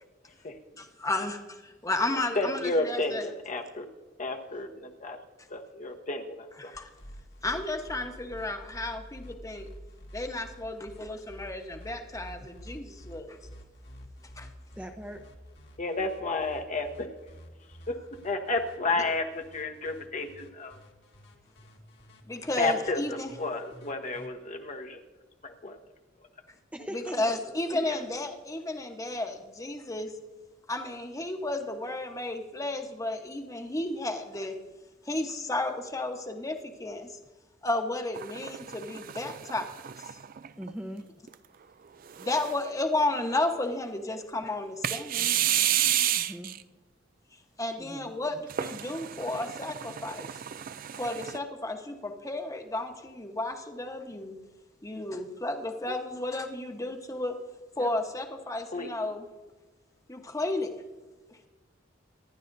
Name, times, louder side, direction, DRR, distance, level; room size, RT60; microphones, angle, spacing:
voice 1, 0.8-3.3 6.6-6.9 7.4-9.7 10.1-13.4 14.4-14.5 22.3-23.3 26.9-30.1 30.7-34.5 35.0-37.2 37.6-39.7 40.1-40.2 42.2-45.5 47.6-50.3 50.9-54.4 54.8-57.3 57.8-59.2 60.1-60.7 61.3-61.4, left 2 dB, 15° left, 4 dB, 1.1 m, -33 dB
voice 2, 2.4-3.9 4.2-5.2 5.5-6.7 15.8-17.1 17.9-18.0 18.2-20.8 22.6-25.0 25.4-25.8 27.8-28.0 57.8-57.9 58.7-58.9, left 3 dB, 40° left, 4 dB, 1.0 m, -31 dB
sound 1, 6.7-24.3, equal, 60° left, 1.9 m, -49 dB
voice 3, 14.8-15.3 26.7-27.2 40.6-41.1 46.2-46.5 47.8-48.1, equal, 5° right, 4 dB, 0.8 m, -40 dB
sound 2, 38.2-40.7 41.3-41.4 42.1-42.7 44.8-46.6 48.5-51.4, right 11 dB, 50° right, 0.4 m, -31 dB
25.5 x 11.0 x 2.7 m, 1.2 s
head